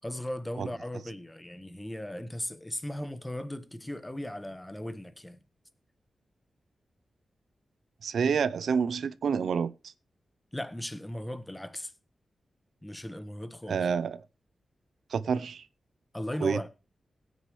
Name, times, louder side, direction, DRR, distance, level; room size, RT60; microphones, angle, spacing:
voice 1, 0.0-5.4 10.5-11.9 12.8-13.9 16.1-16.7, left 1 dB, 10° left, 1.2 m, -37 dB
voice 2, 8.0-9.7 13.7-14.2 15.1-15.7 16.4-16.6, right 6 dB, 85° right, 0.6 m, -28 dB
17.5 x 9.3 x 3.2 m
wide cardioid pair, 120°, 0 cm